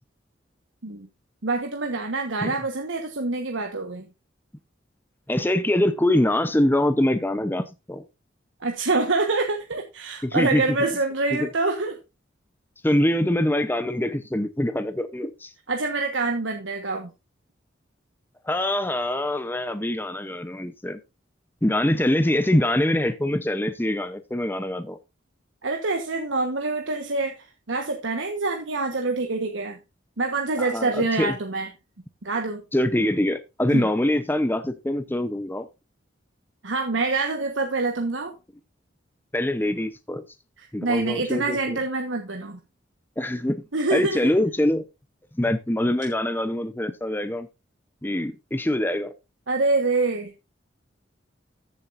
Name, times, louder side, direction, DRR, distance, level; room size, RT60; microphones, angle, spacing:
voice 1, 1.4-4.1 8.6-12.0 15.7-17.1 25.6-29.8 30.2-31.7 32.2-32.6 33.7-33.9 36.6-38.4 40.6-42.6 43.7-44.3 49.5-50.3, right 3 dB, 85° right, 1.3 m, -26 dB
voice 2, 5.3-8.0 10.2-10.6 11.4-11.5 12.8-15.5 18.4-21.0 21.6-25.0 30.6-31.3 32.7-35.7 39.3-40.2 40.7-41.8 43.2-43.6 43.9-44.8 45.4-47.5 48.0-49.1, left 1 dB, 10° left, 0.7 m, -24 dB
14.0 x 7.5 x 2.6 m
head